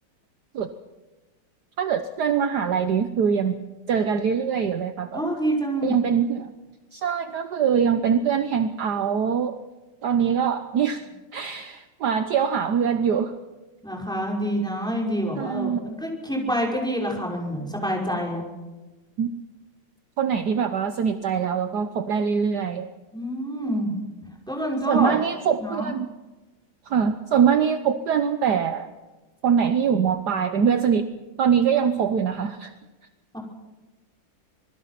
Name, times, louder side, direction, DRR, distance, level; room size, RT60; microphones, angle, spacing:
voice 1, 1.8-3.6 3.9-5.2 5.8-6.5 6.9-9.6 10.0-11.1 11.3-13.3 15.4-15.8 19.2-19.3 20.2-22.9 24.9-26.1 26.9-28.9 29.4-31.0 31.4-32.7, right 7 dB, 60° right, 8 dB, 1.4 m, -23 dB
voice 2, 5.1-6.0 13.8-18.5 23.1-23.9 24.5-25.1 25.6-25.9 33.3-33.4, equal, ahead, -1 dB, 5.6 m, -27 dB
26.0 x 21.0 x 6.0 m, 1.1 s
omnidirectional pair, 2.1 m